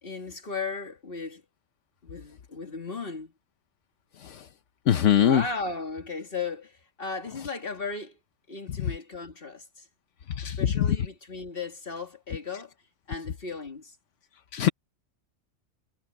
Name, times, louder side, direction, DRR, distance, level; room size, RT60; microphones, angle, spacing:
voice 1, 0.0-1.4 2.0-3.3 5.2-8.2 8.5-9.9 10.4-12.7 13.1-14.0, left 4 dB, 50° left, 2.6 m, -36 dB
voice 2, 4.9-5.4 10.4-11.0 14.5-14.7, left 10 dB, 75° left, 1.1 m, -22 dB
omnidirectional pair, 1.3 m